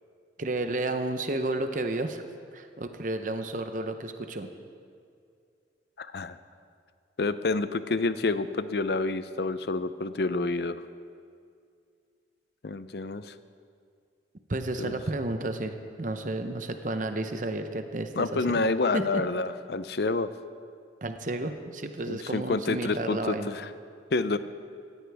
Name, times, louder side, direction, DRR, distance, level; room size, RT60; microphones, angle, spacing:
voice 1, 0.4-2.2 2.5-4.5 14.5-18.6 18.9-19.2 21.0-23.5, right 2 dB, 45° right, 7 dB, 0.8 m, -32 dB
voice 2, 6.0-6.4 7.2-10.8 12.6-13.3 14.8-15.0 18.2-20.3 22.1-23.7 24.1-24.4, left 3 dB, 60° left, 13 dB, 0.5 m, -28 dB
17.5 x 14.5 x 3.5 m, 2.3 s
head